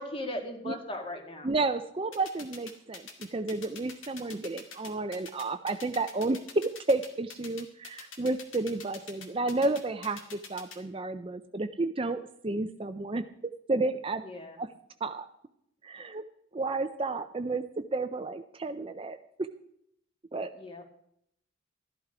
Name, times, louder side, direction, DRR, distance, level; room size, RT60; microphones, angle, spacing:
voice 1, 0.0-1.5 14.2-14.6 20.5-20.8, left 1 dB, 25° left, 4 dB, 2.0 m, -38 dB
voice 2, 1.4-13.2 13.7-14.2 14.6-14.7 15.0-15.3 15.8-16.2 16.5-19.2 20.3-20.5, right 2 dB, 30° right, 10 dB, 0.5 m, -31 dB
sound 1, 2.1-10.8, left 5 dB, 85° left, 2.2 m, -44 dB
14.0 x 11.5 x 4.9 m, 0.74 s
head